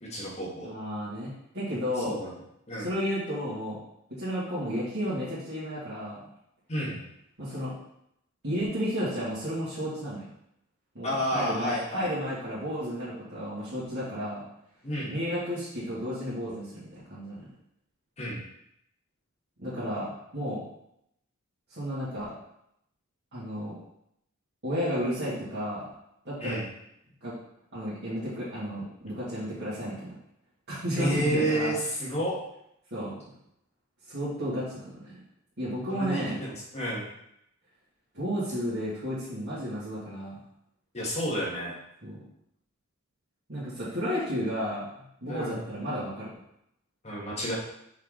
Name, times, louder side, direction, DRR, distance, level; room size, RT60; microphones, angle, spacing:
voice 1, 0.0-0.7 2.0-2.3 2.7-2.9 6.7-7.0 11.0-12.1 14.8-15.1 18.2-18.4 26.4-26.6 30.9-32.4 35.9-37.1 40.9-41.7 45.3-45.6 47.0-47.5, equal, 30° left, -5 dB, 1.6 m, -30 dB
voice 2, 0.6-2.2 2.8-3.8 4.2-6.2 7.4-7.7 8.4-10.3 10.9-14.4 15.1-17.4 19.6-20.6 21.7-22.3 23.3-23.7 24.6-25.9 26.2-26.6 27.2-27.3 27.7-30.1 30.7-31.8 32.9-33.1 34.1-35.2 35.6-36.4 38.1-40.4 42.0-42.2 43.5-46.3, equal, 55° right, -12 dB, 2.4 m, -32 dB
5.7 x 4.7 x 3.8 m, 0.77 s
head